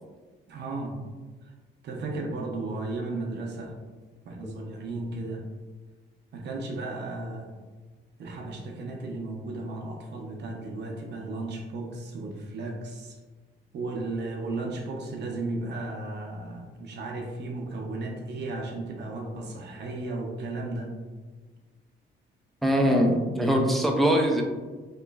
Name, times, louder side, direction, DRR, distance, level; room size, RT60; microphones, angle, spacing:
voice 1, 0.5-1.0 1.8-3.8 4.2-5.4 6.3-7.5 8.2-13.2 13.7-20.9, right 2 dB, 60° right, 1 dB, 0.5 m, -34 dB
voice 2, 22.6-24.4, equal, ahead, 1 dB, 0.3 m, -22 dB
2.9 x 2.4 x 2.2 m, 1.3 s
cardioid pair, 90°, 20 cm